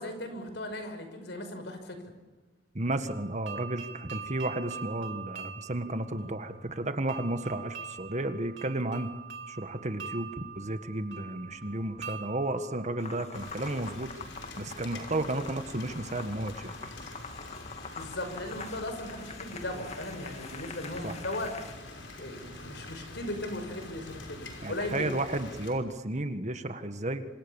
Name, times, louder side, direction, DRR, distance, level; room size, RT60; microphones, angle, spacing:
voice 1, 0.0-2.0 18.0-21.5 22.2-25.1, left 1 dB, 65° left, 7 dB, 5.7 m, -37 dB
voice 2, 2.7-9.1 9.5-14.1 14.6-16.7 21.0-21.1 24.6-27.3, right 2 dB, 40° right, 9 dB, 1.7 m, -33 dB
sound 1, 3.1-13.9, right 6 dB, 75° right, 2.5 m, -44 dB
sound 2, 13.0-21.7, left 4 dB, 35° left, 2.0 m, -45 dB
Rain, 13.3-25.7, left 2 dB, 80° left, 6.0 m, -45 dB
28.0 x 26.0 x 7.2 m, 1.2 s
head